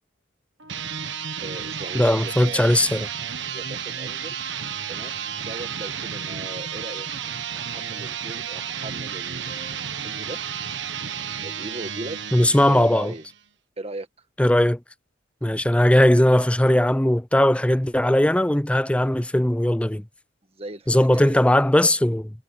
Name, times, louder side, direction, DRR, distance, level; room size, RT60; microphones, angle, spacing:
sound 1, 0.6-13.4, right 7 dB, 65° right, 1.4 m, -32 dB
voice 1, 1.4-2.7 3.5-4.4 4.9-7.1 7.5-10.4 11.4-13.3 13.8-14.1 20.5-21.4, right 2 dB, 30° right, 1.7 m, -38 dB
voice 2, 1.9-3.1 12.3-13.1 14.4-14.8 15.4-20.0 20.9-22.3, left 1 dB, 5° left, 0.5 m, -19 dB
head